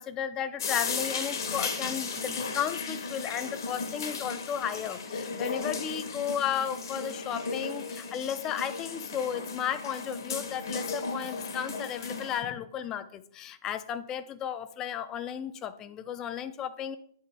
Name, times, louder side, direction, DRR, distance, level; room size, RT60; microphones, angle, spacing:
voice 1, 0.0-17.0, left 9 dB, 20° left, 12 dB, 0.4 m, -34 dB
sound 1, 0.6-12.4, left 4 dB, 60° left, 1.0 m, -35 dB
8.6 x 4.1 x 3.4 m, 0.65 s
figure-of-eight pair, 125°, 2 cm